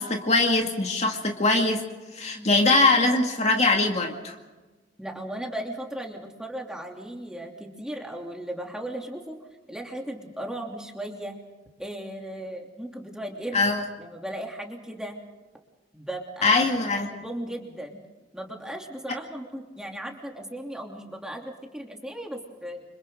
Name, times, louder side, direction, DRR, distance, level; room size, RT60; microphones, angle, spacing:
voice 1, 0.0-1.8 2.1-4.3 13.5-13.8 16.4-17.1, left 3 dB, 40° left, 2 dB, 2.3 m, -22 dB
voice 2, 5.0-9.4 9.7-11.4 11.8-13.7 14.0-15.2 15.9-16.7 17.1-18.0 18.3-22.8, right 1 dB, 5° right, 1 dB, 3.0 m, -36 dB
29.5 x 26.0 x 3.9 m, 1.2 s
head